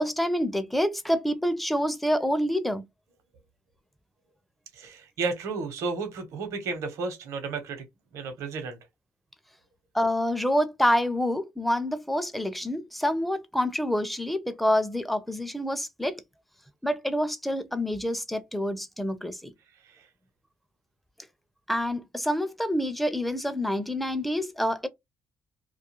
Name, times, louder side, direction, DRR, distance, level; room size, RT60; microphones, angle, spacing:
voice 1, 0.0-2.8 9.9-16.2 16.8-19.5 21.7-24.9, equal, ahead, 0.4 m, -27 dB
voice 2, 4.7-7.8 8.1-8.8, right 4 dB, 85° right, 0.8 m, -32 dB
2.3 x 2.3 x 2.8 m
cardioid pair, 105°, 5 cm